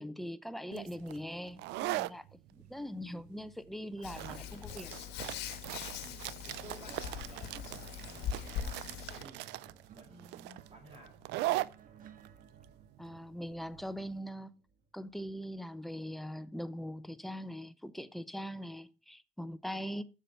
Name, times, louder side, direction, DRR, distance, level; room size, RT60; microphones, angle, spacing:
voice 1, 0.0-2.2 2.5-4.9 13.0-14.5 14.9-20.0, equal, ahead, 0.6 m, -41 dB
sound 1, 0.7-14.1, right 17 dB, 85° right, 0.4 m, -40 dB
Hands, 4.0-9.2, left 9 dB, 85° left, 1.3 m, -41 dB
voice 2, 5.9-11.4, right 1 dB, 35° right, 4.8 m, -55 dB
sound 2, 6.9-15.6 16.6-16.8, right 7 dB, 55° right, 1.6 m, -58 dB
7.4 x 6.9 x 5.5 m
cardioid pair, 110°, 17 cm